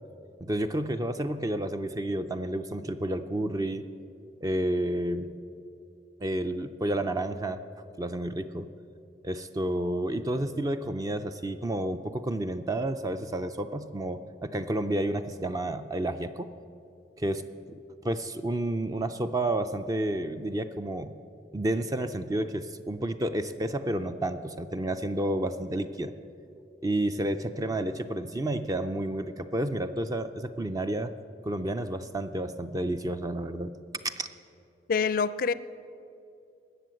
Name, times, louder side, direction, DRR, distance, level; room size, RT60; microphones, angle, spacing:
voice 1, 0.4-3.8 4.4-5.3 6.2-7.6 8.0-8.7 9.2-16.5 17.2-17.8 18.0-21.2 21.5-26.1 26.7-31.1 31.4-33.8 34.0-34.3, right 1 dB, 20° right, 9 dB, 0.4 m, -30 dB
voice 2, 34.9-35.5, left 5 dB, 50° left, 17 dB, 0.4 m, -25 dB
19.5 x 7.5 x 7.6 m, 2.6 s
head